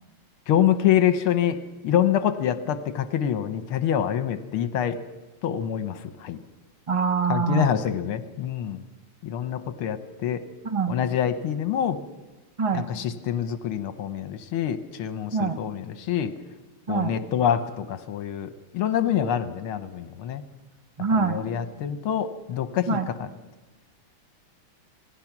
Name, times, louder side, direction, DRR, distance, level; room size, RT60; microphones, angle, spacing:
voice 1, 0.5-1.6 1.8-5.0 5.4-6.4 7.3-8.8 9.2-10.4 10.9-12.0 12.7-16.3 16.9-20.4 21.2-23.3, left 10 dB, 75° left, 11 dB, 1.8 m, -26 dB
voice 2, 6.9-7.7 10.6-11.0 12.6-12.9 15.3-15.6 16.9-17.2 21.0-21.4 22.9-23.1, right 5 dB, 50° right, 8 dB, 0.4 m, -24 dB
26.5 x 18.5 x 6.0 m, 1.1 s
omnidirectional pair, 2.4 m